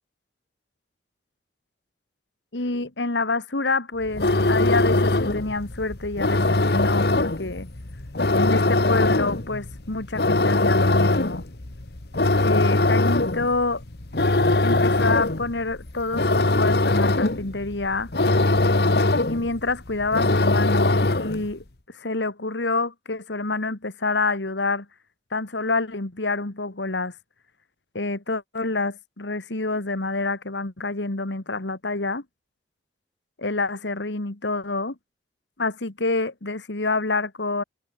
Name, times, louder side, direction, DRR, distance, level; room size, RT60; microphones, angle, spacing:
voice 1, 2.5-7.7 8.3-11.4 12.4-13.8 14.6-18.1 19.3-24.9 25.3-27.1 27.9-32.2 33.4-35.0 35.6-37.6, left 3 dB, 85° left, 2.0 m, -27 dB
sound 1, 4.0-21.5, left 2 dB, 60° left, 1.4 m, -22 dB
head